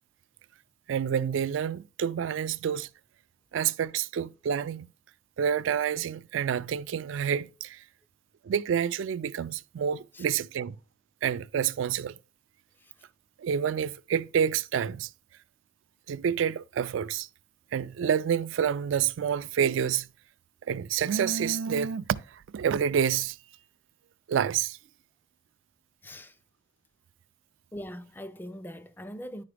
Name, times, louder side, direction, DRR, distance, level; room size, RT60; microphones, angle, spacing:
voice 1, 0.9-2.9 3.5-4.9 5.4-7.8 8.4-10.8 11.2-12.1 13.4-15.1 16.1-17.3 17.7-20.1 20.7-23.4 24.3-24.8, right 8 dB, 75° right, 0.3 m, -28 dB
voice 2, 26.0-26.4 27.7-29.4, equal, 10° left, 0.3 m, -41 dB
10.0 x 4.8 x 3.3 m
head